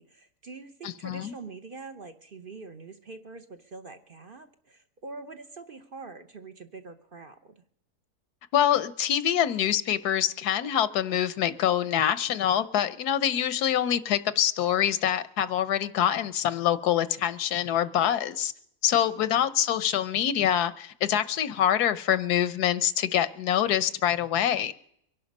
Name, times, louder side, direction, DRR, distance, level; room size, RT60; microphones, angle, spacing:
voice 1, 0.0-7.6 19.1-19.5, right 3 dB, 45° right, 8 dB, 0.9 m, -44 dB
voice 2, 0.8-1.3 8.5-18.5 18.8-24.7, left 10 dB, 85° left, 16 dB, 1.3 m, -25 dB
24.0 x 11.0 x 5.4 m, 0.69 s
omnidirectional pair, 1.6 m